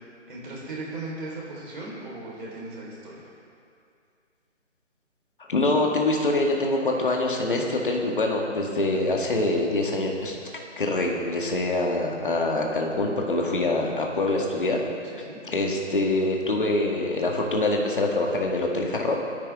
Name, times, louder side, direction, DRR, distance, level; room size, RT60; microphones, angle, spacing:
voice 1, 0.3-3.3 15.1-15.4, right 2 dB, 40° right, -5 dB, 4.2 m, -37 dB
voice 2, 5.5-10.4 10.8-14.8 15.1-15.2 15.5-19.2, left 2 dB, 45° left, 0 dB, 2.0 m, -25 dB
23.0 x 10.5 x 3.7 m, 2.4 s
hypercardioid pair, 175°, 37 cm